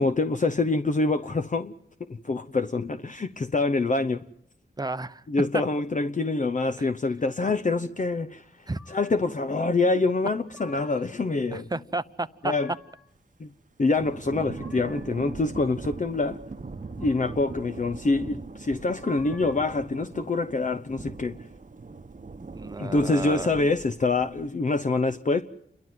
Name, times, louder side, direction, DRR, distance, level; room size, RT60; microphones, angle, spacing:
voice 1, 0.0-1.7 2.0-4.2 5.3-11.7 12.4-12.7 13.4-13.5 13.8-16.4 17.0-21.4 22.8-25.4, left 3 dB, 40° left, 0.8 m, -26 dB
voice 2, 4.8-5.2 5.5-5.6 8.7-8.8 10.7-10.8 11.5-12.5 22.5-23.5, right 2 dB, 20° right, 0.8 m, -32 dB
sound 1, 8.7-9.3 10.2-11.2 12.1-13.1 14.1-15.2 16.7-17.6 18.7-19.7, left 2 dB, ahead, 1.8 m, -51 dB
Thunder / Rain, 14.0-24.5, right 4 dB, 40° right, 1.0 m, -41 dB
29.0 x 12.0 x 9.3 m
wide cardioid pair, 65°, 20 cm